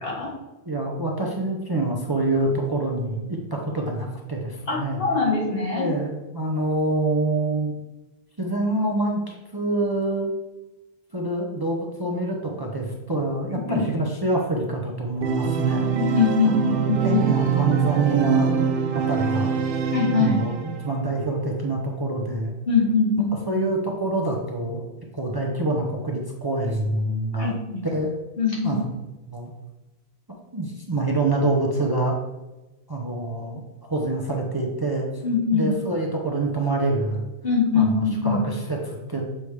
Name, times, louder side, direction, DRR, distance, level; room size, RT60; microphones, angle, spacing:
voice 1, 0.0-0.3 4.7-5.9 13.7-13.8 15.9-17.2 19.9-20.4 22.7-23.5 27.4-27.8 28.4-28.8 35.2-35.7 37.4-38.4, left 4 dB, 60° left, -4 dB, 2.0 m, -22 dB
voice 2, 0.6-5.0 5.7-7.8 8.4-10.3 11.1-15.9 16.4-18.5 18.9-19.6 20.2-22.5 23.5-24.8 25.1-27.5 27.8-28.1 28.6-28.8 29.3-29.5 30.5-32.2 32.9-35.2 35.5-37.3 37.7-39.2, right 2 dB, 25° right, -1 dB, 0.7 m, -26 dB
Organ, 15.2-20.9, right 7 dB, 70° right, 0.7 m, -24 dB
7.1 x 4.9 x 3.2 m, 1.1 s
omnidirectional pair, 1.1 m